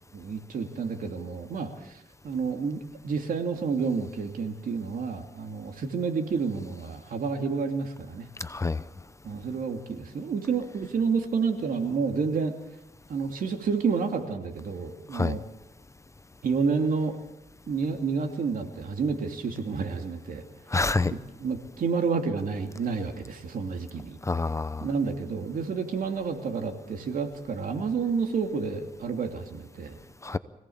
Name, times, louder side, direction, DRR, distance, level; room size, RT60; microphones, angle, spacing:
voice 1, 0.1-8.3 9.2-12.5 13.1-15.4 16.4-17.2 17.7-20.4 21.1-24.2 24.8-30.0, right 5 dB, 75° right, 4 dB, 2.7 m, -29 dB
voice 2, 8.4-8.8 15.1-15.4 20.7-21.1 24.2-24.9 30.2-30.4, left 3 dB, 20° left, 14 dB, 0.8 m, -27 dB
25.5 x 17.5 x 7.3 m, 0.99 s
cardioid pair, 90°, 14 cm